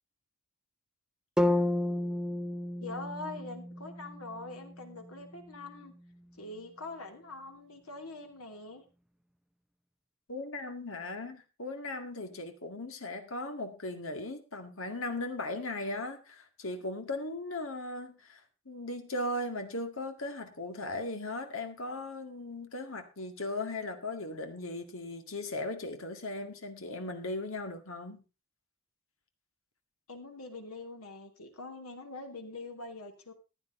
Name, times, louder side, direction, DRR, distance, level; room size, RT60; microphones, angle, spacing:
sound 1, 1.4-5.4, left 1 dB, 5° right, 0.6 m, -32 dB
voice 1, 2.8-5.9 6.4-8.8 30.1-33.3, left 2 dB, 85° left, 4 dB, 2.8 m, -44 dB
voice 2, 10.3-28.2, left 2 dB, 65° left, 6 dB, 2.0 m, -38 dB
15.0 x 10.5 x 3.8 m, 0.30 s
head